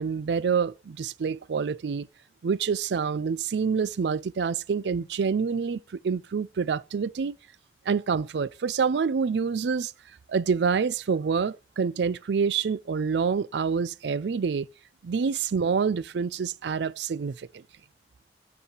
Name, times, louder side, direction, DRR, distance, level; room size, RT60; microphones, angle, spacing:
voice 1, 0.0-2.1 2.4-7.4 7.9-9.9 10.3-14.7 15.0-17.5, right 5 dB, 85° right, 0.4 m, -27 dB
8.0 x 4.9 x 5.3 m
head